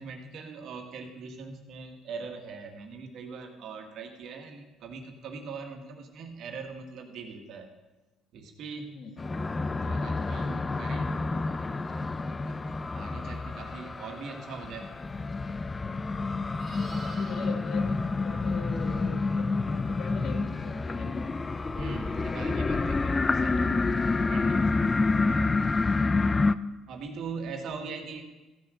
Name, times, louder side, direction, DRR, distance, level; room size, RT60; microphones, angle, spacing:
voice 1, 0.0-7.7 8.3-8.9 9.7-11.5 11.9-12.0 12.4-14.9 21.7-25.1 26.9-28.2, right 4 dB, 65° right, 4 dB, 1.9 m, -41 dB
sound 1, 9.2-26.6, left 3 dB, 25° left, 0.5 m, -28 dB
Livestock farm animals working animals, 16.4-19.1 23.5-23.7, right 4 dB, 35° right, 1.8 m, -51 dB
voice 2, 16.9-21.2 27.6-28.2, left 4 dB, 55° left, 5 dB, 1.9 m, -42 dB
14.5 x 6.1 x 6.5 m, 1.1 s
supercardioid pair, 85°, 0 cm